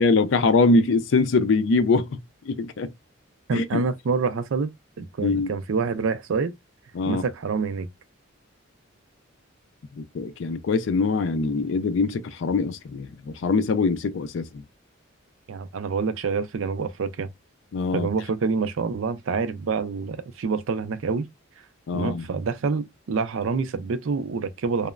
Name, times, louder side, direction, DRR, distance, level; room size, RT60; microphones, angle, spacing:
voice 1, 0.0-2.9 3.5-3.8 5.2-5.5 6.9-7.2 10.0-14.6 17.7-18.1 21.9-22.2, left 3 dB, 65° left, 0.4 m, -23 dB
voice 2, 3.5-4.7 5.0-6.5 7.1-7.9 15.5-17.3 17.9-21.3 21.9-24.9, right 4 dB, 75° right, 0.4 m, -27 dB
3.0 x 2.0 x 2.3 m
head